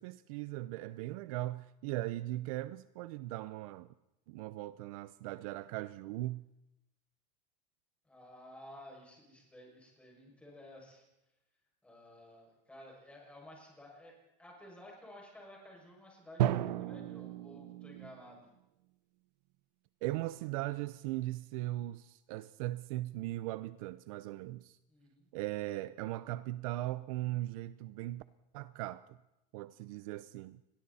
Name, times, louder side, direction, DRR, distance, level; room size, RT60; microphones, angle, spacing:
voice 1, 0.0-3.9 4.3-6.4 20.0-24.8 25.3-28.2 28.5-29.0 29.5-30.6, right 17 dB, 55° right, 0.6 m, -39 dB
voice 2, 8.1-11.0 11.8-18.5 24.9-25.3, left 1 dB, 5° left, 6.3 m, -54 dB
Drum, 16.4-18.3, right 12 dB, 80° right, 1.0 m, -34 dB
29.0 x 22.0 x 4.2 m
supercardioid pair, 170°, 21 cm